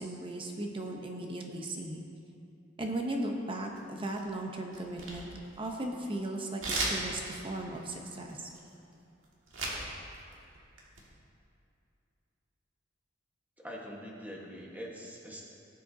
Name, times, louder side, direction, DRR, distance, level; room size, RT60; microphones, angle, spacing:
voice 1, 0.0-2.0 2.8-5.3 5.6-8.5, right 1 dB, 25° right, 1 dB, 0.8 m, -37 dB
sound 1, 3.8-4.4 4.7-6.0 6.6-9.9 10.1-11.0, right 2 dB, 90° right, 2.0 m, -36 dB
voice 2, 13.6-15.4, equal, 10° right, -3 dB, 1.3 m, -43 dB
18.0 x 7.6 x 2.7 m, 2.6 s
head